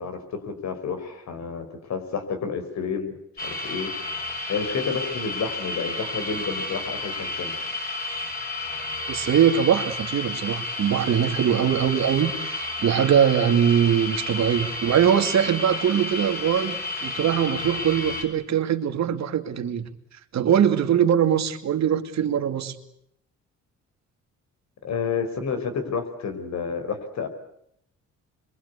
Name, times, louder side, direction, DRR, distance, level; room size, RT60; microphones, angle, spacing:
voice 1, 0.0-3.9 4.5-7.6 24.8-27.3, left 5 dB, 65° left, 8 dB, 5.2 m, -30 dB
sound 1, 3.4-18.2, left 2 dB, 30° left, 7.0 m, -31 dB
voice 2, 9.1-19.9 20.3-22.8, right 9 dB, 65° right, 7 dB, 2.5 m, -22 dB
26.5 x 23.5 x 8.4 m, 0.75 s
cardioid pair, 90°, 30 cm